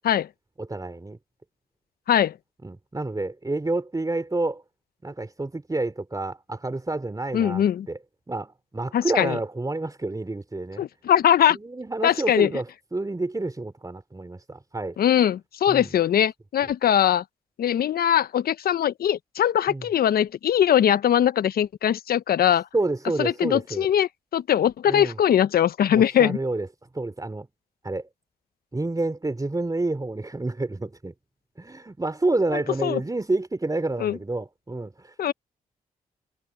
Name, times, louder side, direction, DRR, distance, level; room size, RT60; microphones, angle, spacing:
voice 1, 0.6-1.2 2.6-4.6 5.0-8.0 8.3-10.8 11.5-15.0 15.7-15.9 19.7-19.9 22.7-23.9 24.9-25.2 25.9-26.7 26.9-27.5 27.8-28.0 28.7-31.1 31.6-35.1, right 2 dB, 20° right, 3.3 m, -29 dB
voice 2, 7.3-7.9 8.9-9.4 10.8-11.6 12.0-12.5 15.0-17.2 17.6-22.7 23.2-26.4 32.5-33.0 34.0-34.2 35.2-35.3, left 10 dB, 70° left, 1.0 m, -21 dB
supercardioid pair, 45°, 16 cm